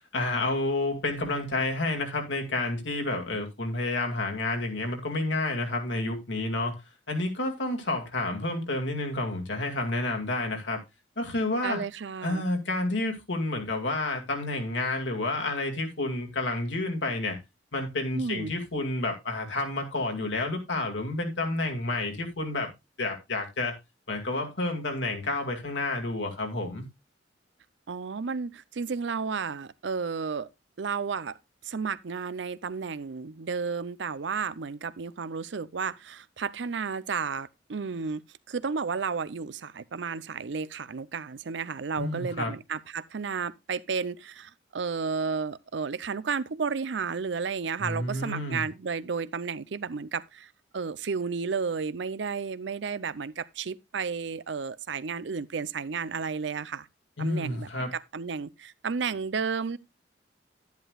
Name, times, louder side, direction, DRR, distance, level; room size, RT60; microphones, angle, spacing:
voice 1, 0.1-6.7 7.1-10.8 11.2-11.8 12.2-17.4 17.7-22.7 23.0-23.7 24.1-26.8 42.0-42.5 47.8-48.6 57.2-57.9, left 2 dB, 80° left, 2.2 m, -30 dB
voice 2, 11.6-12.5 18.1-18.5 27.9-30.5 30.8-31.4 31.6-38.2 38.5-56.9 57.2-59.8, right 5 dB, 75° right, 0.6 m, -32 dB
11.0 x 10.5 x 2.3 m
head